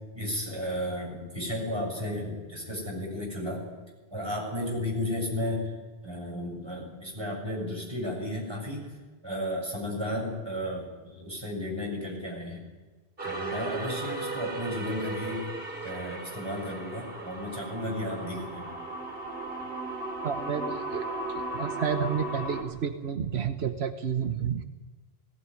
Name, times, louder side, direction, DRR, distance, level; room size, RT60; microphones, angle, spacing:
voice 1, 0.1-3.6 4.1-5.7 6.0-8.8 9.2-12.6 13.2-15.4 15.8-18.7, left 1 dB, 25° right, -1 dB, 7.3 m, -33 dB
sound 1, 13.2-22.6, right 2 dB, 65° right, 3.3 m, -36 dB
voice 2, 20.2-21.1 21.3-24.6, right 7 dB, 90° right, 7 dB, 1.3 m, -30 dB
18.0 x 18.0 x 9.7 m, 1.3 s
omnidirectional pair, 1.0 m